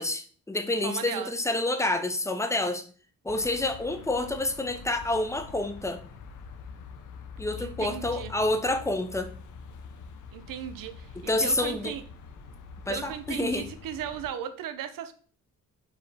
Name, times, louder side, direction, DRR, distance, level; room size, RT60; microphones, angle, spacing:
voice 1, 0.0-2.8 3.2-6.0 7.4-9.3 11.3-11.9 12.9-13.6, left 2 dB, 10° left, 8 dB, 0.5 m, -28 dB
voice 2, 0.8-1.3 7.6-8.3 10.3-12.0 12.9-15.1, right 9 dB, 80° right, 9 dB, 0.6 m, -36 dB
sound 1, 3.3-14.3, left 5 dB, 65° left, 0.7 m, -45 dB
4.6 x 2.9 x 3.4 m, 0.42 s
cardioid pair, 90°, 32 cm